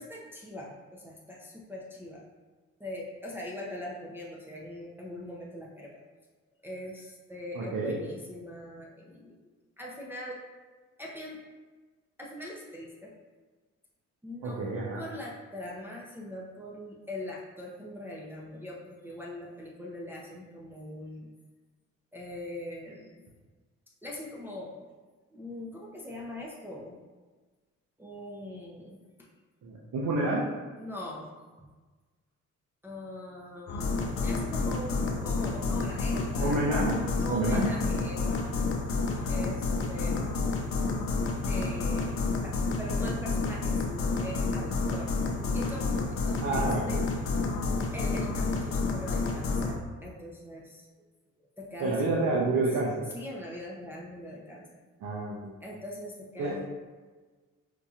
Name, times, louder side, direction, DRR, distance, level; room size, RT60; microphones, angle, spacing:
voice 1, 0.0-2.2 2.8-6.0 6.6-9.4 9.8-10.4 11.0-11.4 12.2-13.1 14.2-14.6 15.0-21.3 22.1-23.3 24.0-24.8 25.3-27.0 28.0-29.3 30.8-31.3 31.6-31.7 32.8-36.7 37.2-38.6 39.2-40.3 41.4-45.1 45.5-47.1 47.9-50.9 51.6-52.3 53.1-54.7 55.6-56.6, left 1 dB, 5° right, -5 dB, 0.6 m, -42 dB
voice 2, 7.5-8.0 14.4-15.0 29.6-30.5 36.4-37.0 37.3-37.7 46.4-47.0 51.8-53.0 55.0-55.3 56.4-56.5, right 2 dB, 70° right, -4 dB, 0.7 m, -28 dB
sound 1, 33.7-49.8, left 3 dB, 50° left, 0.6 m, -30 dB
4.8 x 2.7 x 2.4 m, 1.3 s
cardioid pair, 90°, 30 cm